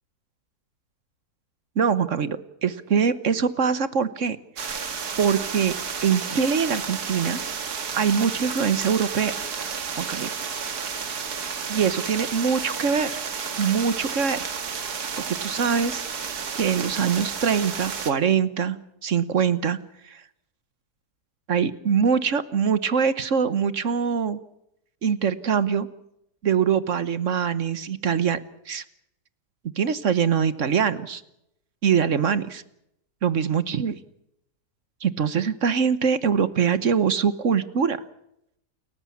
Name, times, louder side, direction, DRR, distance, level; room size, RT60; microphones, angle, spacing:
voice 1, 1.8-4.4 5.2-5.7 6.0-7.4 7.9-9.3 10.0-10.3 11.7-13.2 13.6-14.5 15.3-16.0 16.5-18.8 19.0-19.8 20.1-20.2 21.5-24.4 25.0-25.9 26.4-28.4 28.7-28.8 29.8-31.2 31.8-32.6 33.2-33.9 35.0-38.0, right 6 dB, 55° right, 14 dB, 1.4 m, -23 dB
sound 1, 4.6-18.1, right 6 dB, 75° right, 2.2 m, -32 dB
29.5 x 14.5 x 8.6 m, 0.80 s
omnidirectional pair, 1.7 m